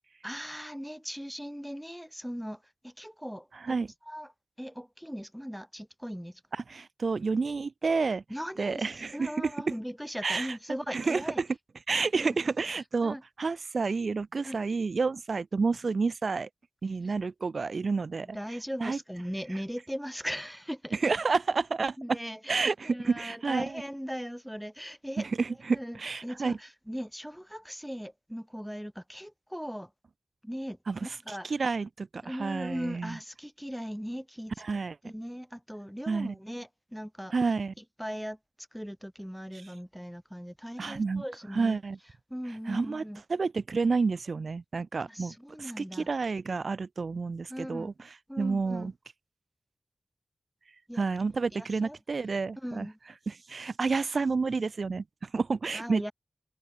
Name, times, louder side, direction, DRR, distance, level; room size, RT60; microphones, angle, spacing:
voice 1, 0.2-3.7 4.0-4.3 4.6-6.4 8.3-11.4 12.1-12.4 13.0-13.2 14.4-14.6 17.0-17.1 18.3-21.0 22.0-25.3 25.7-29.9 30.4-31.5 32.2-34.5 35.0-37.3 38.0-41.8 42.3-43.2 45.0-46.1 47.5-47.9 48.3-48.9 50.9-51.0 51.5-52.0 52.6-53.0 55.7-56.1, equal, ahead, 0.5 m, -39 dB
voice 2, 6.5-8.2 8.6-9.5 10.2-10.5 10.9-11.5 11.9-16.5 16.8-18.4 18.8-19.0 20.9-22.2 22.5-23.7 25.2-26.6 30.9-33.2 34.6-35.0 36.1-36.3 37.3-37.7 40.8-41.2 41.5-42.0 42.7-43.0 43.3-47.9 48.4-48.9 51.0-52.9 53.3-56.1, right 4 dB, 75° right, 0.4 m, -30 dB
cardioid pair, 40°, 0 cm